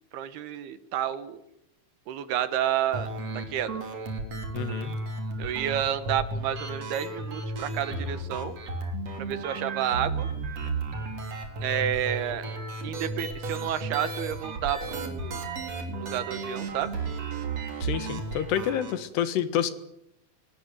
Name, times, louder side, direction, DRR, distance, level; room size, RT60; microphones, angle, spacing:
voice 1, 0.1-1.4 2.1-3.8 5.4-8.6 9.2-10.3 11.6-12.4 12.8-15.4 16.0-16.9, right 10 dB, 70° right, 12 dB, 2.9 m, -30 dB
sound 1, 2.9-18.9, right 3 dB, 35° right, 4.3 m, -34 dB
voice 2, 4.5-5.0 17.8-19.7, left 9 dB, 70° left, 12 dB, 3.4 m, -28 dB
27.0 x 18.5 x 9.4 m, 0.81 s
omnidirectional pair, 5.3 m